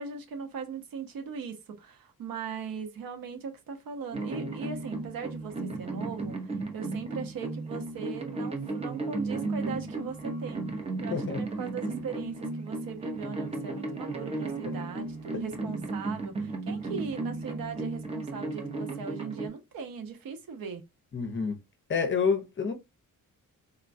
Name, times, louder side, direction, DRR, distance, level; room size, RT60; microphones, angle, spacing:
voice 1, 0.0-10.6 11.0-20.8, right 5 dB, 80° right, 0.9 m, -39 dB
sound 1, 4.1-19.5, right 3 dB, 20° right, 0.6 m, -35 dB
voice 2, 21.1-21.6 21.9-22.7, left 5 dB, 35° left, 0.6 m, -28 dB
3.6 x 2.2 x 2.5 m
wide cardioid pair, 145°, 34 cm